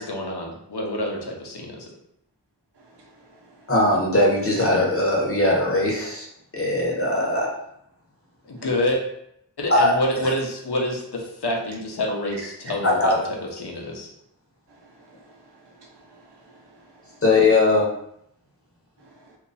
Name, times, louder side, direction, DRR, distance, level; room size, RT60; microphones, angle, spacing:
voice 1, 0.0-1.9 8.5-9.0 9.6-13.2 13.6-14.1, left 1 dB, 70° left, 0 dB, 0.9 m, -27 dB
voice 2, 3.0-3.3 15.1-15.2 15.5-16.8 19.0-19.4, right 2 dB, 85° right, 1 dB, 0.7 m, -53 dB
voice 3, 3.7-6.3 6.5-7.5 9.7-10.0 12.8-13.1 17.2-17.9, left 2 dB, 35° left, -2 dB, 1.0 m, -20 dB
2.9 x 2.5 x 4.0 m, 0.75 s
wide cardioid pair, 55°, 40 cm